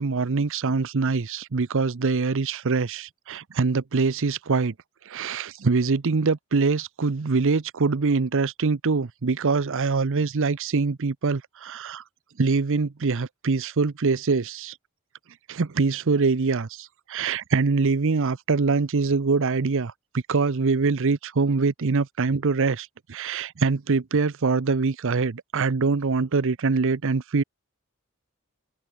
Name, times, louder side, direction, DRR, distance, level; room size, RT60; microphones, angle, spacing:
voice 1, 0.0-4.7 5.1-12.0 12.4-14.7 15.5-27.4, right 4 dB, 60° right, 0.7 m, -24 dB
head